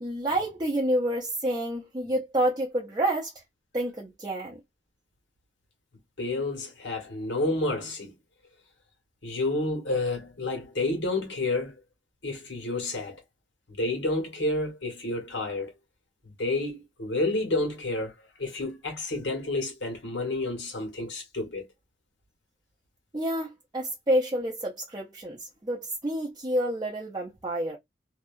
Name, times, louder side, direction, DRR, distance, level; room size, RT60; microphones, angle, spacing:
voice 1, 0.0-3.4 3.7-4.6 23.1-27.8, right 1 dB, 25° right, 0.5 m, -29 dB
voice 2, 6.2-8.1 9.2-11.7 12.2-13.2 13.7-15.7 16.2-21.6, left 2 dB, 90° left, 1.3 m, -30 dB
2.7 x 2.3 x 2.4 m
head